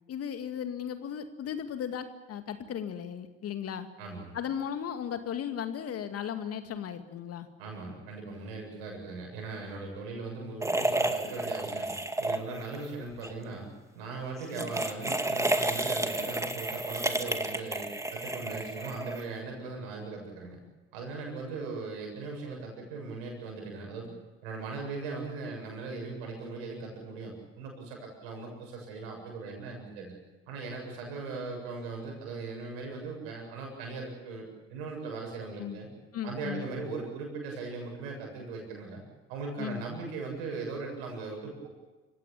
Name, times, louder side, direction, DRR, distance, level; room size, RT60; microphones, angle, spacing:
voice 1, 0.1-3.9 4.3-7.5 14.5-14.8 35.6-35.8 36.1-36.7 39.6-39.8, left 8 dB, 50° left, 9 dB, 2.2 m, -36 dB
voice 2, 4.0-4.4 7.6-13.7 13.9-20.6 20.9-24.1 24.4-30.2 30.5-35.9 36.2-39.0 39.3-41.7, right 3 dB, 75° right, 1 dB, 7.6 m, -39 dB
sound 1, 10.6-12.8 13.1-13.3 14.4-19.4, right 2 dB, 10° right, 2.2 m, -31 dB
28.0 x 16.5 x 8.7 m, 1.2 s
hypercardioid pair, 60°, 31 cm